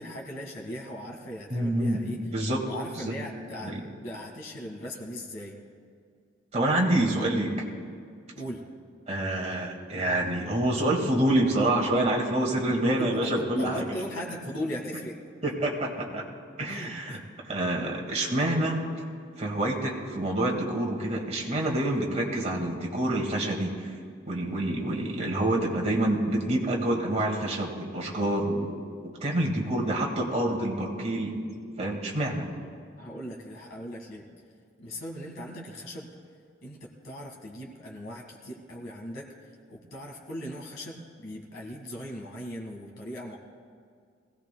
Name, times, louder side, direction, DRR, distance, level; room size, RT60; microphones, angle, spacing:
voice 1, 0.0-2.2 2.7-5.6 8.3-8.7 12.9-15.2 16.7-17.2 33.0-34.3 34.8-36.1 36.6-39.3 39.7-43.4, equal, 70° left, 0 dB, 1.8 m, -38 dB
voice 2, 1.5-2.0 2.3-2.6 3.0-3.2 3.6-3.8 6.5-7.5 9.1-13.8 15.4-16.2 16.6-17.2 17.4-18.8 19.4-23.7 24.3-28.7 29.2-31.4 31.8-32.5, right 1 dB, 35° right, 0 dB, 1.9 m, -27 dB
21.0 x 16.5 x 2.2 m, 2.2 s
head